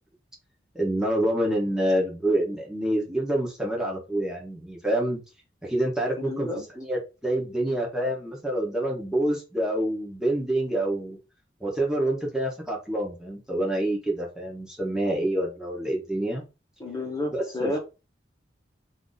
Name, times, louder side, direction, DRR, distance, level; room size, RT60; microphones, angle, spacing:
voice 1, 0.7-5.2 5.6-11.2 11.6-16.4 17.3-17.8, right 1 dB, 5° right, -2 dB, 0.9 m, -27 dB
voice 2, 6.2-6.6 16.8-17.8, left 2 dB, 20° left, -1 dB, 1.1 m, -31 dB
2.7 x 2.6 x 3.8 m, 0.29 s
head